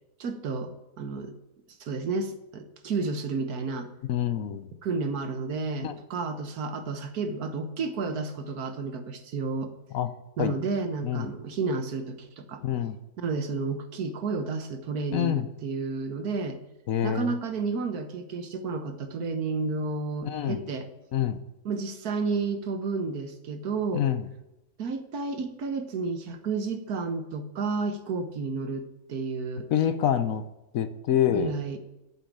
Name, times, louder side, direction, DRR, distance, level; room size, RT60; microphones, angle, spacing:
voice 1, 0.2-1.3 1.8-3.9 4.8-9.7 10.4-12.6 13.2-16.6 17.0-20.9 21.6-24.0 24.8-29.7 31.3-31.8, right 4 dB, 80° right, 7 dB, 1.6 m, -31 dB
voice 2, 4.1-4.7 5.8-5.9 9.9-10.1 10.4-10.5 11.0-11.2 12.6-13.0 15.1-15.4 16.9-17.3 20.2-20.6 21.1-21.4 23.9-24.2 29.7-30.4 30.7-31.5, left 9 dB, 70° left, 11 dB, 1.2 m, -26 dB
8.9 x 7.2 x 8.6 m, 0.94 s
omnidirectional pair, 1.6 m